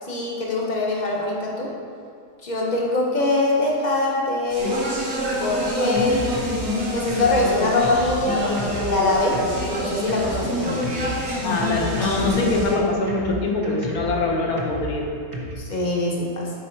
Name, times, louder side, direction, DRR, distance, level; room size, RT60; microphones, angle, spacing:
voice 1, 0.0-1.7 2.4-5.0 5.4-6.4 6.9-9.4 9.7-10.8 15.6-16.5, left 2 dB, 35° left, -2 dB, 0.9 m, -23 dB
Speech, 4.5-12.7, left 1 dB, 80° right, 2.4 m, -27 dB
Drum kit, 5.3-15.5, right 1 dB, 40° right, 0.5 m, -34 dB
voice 2, 11.4-15.1, left 3 dB, 70° left, 0 dB, 1.4 m, -23 dB
7.4 x 4.3 x 4.4 m, 2.2 s
omnidirectional pair, 1.7 m